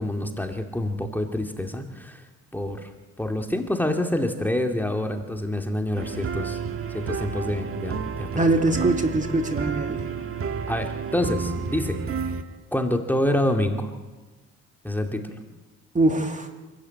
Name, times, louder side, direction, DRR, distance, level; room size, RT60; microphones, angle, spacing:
voice 1, 0.0-2.2 2.5-2.9 3.2-6.6 6.9-8.5 8.8-8.9 10.7-12.0 12.7-13.9 14.8-15.3, left 1 dB, 5° left, 4 dB, 2.4 m, -27 dB
sound 1, 5.9-12.4, right 6 dB, 45° right, 1.9 m, -31 dB
voice 2, 8.4-10.0 15.9-16.5, right 2 dB, 25° right, 5 dB, 2.4 m, -22 dB
27.0 x 13.5 x 9.3 m, 1.2 s
cardioid pair, 90°, 30 cm